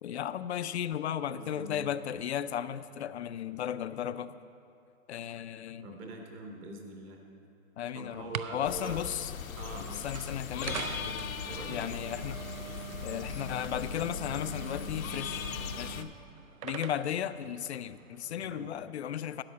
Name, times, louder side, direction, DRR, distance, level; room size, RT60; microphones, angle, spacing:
voice 1, 0.0-4.4 5.1-5.9 7.8-9.3 9.8-11.3 11.7-12.4 13.0-15.5 15.8-16.1 16.6-19.4, left 10 dB, 55° left, 14 dB, 0.5 m, -35 dB
voice 2, 1.3-1.9 5.8-7.2 7.9-9.0 9.6-10.0 11.5-12.0 18.4-18.7, right 2 dB, 15° right, 2 dB, 0.7 m, -43 dB
sound 1, 8.1-18.4, right 10 dB, 85° right, 0.6 m, -44 dB
sound 2, 8.6-16.0, left 8 dB, 75° left, 0.9 m, -39 dB
13.0 x 9.1 x 5.6 m, 2.7 s
hypercardioid pair, 160°, 41 cm